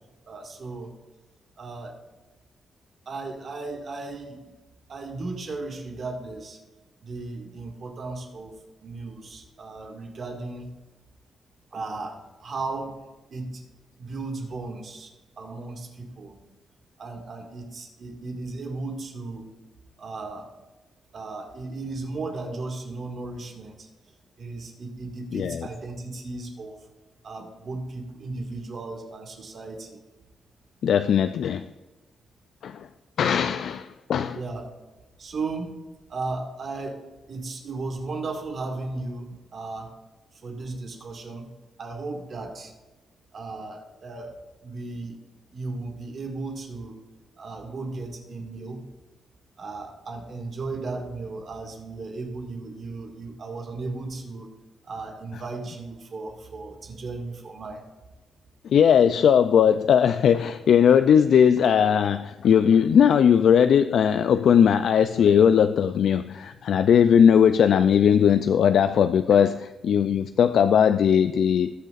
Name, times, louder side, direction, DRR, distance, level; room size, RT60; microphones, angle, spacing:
voice 1, 0.3-0.9 1.6-2.0 3.1-4.5 4.9-6.6 7.0-10.7 11.7-12.9 13.3-13.6 14.0-16.4 17.0-19.5 20.0-20.5 21.1-23.9 24.4-26.8 27.2-30.0 34.3-34.7 35.2-35.8 36.1-39.9 40.3-41.5 41.8-42.7 43.3-45.2 45.5-47.0 47.4-48.8 49.6-54.5 54.8-57.8, right 3 dB, 50° right, 2 dB, 2.0 m, -35 dB
voice 2, 25.3-25.7 30.8-31.6 32.6-32.9 33.2-34.4 58.6-71.7, left 8 dB, 70° left, 10 dB, 0.3 m, -19 dB
19.5 x 6.6 x 2.5 m, 1.2 s
wide cardioid pair, 140°, 0 cm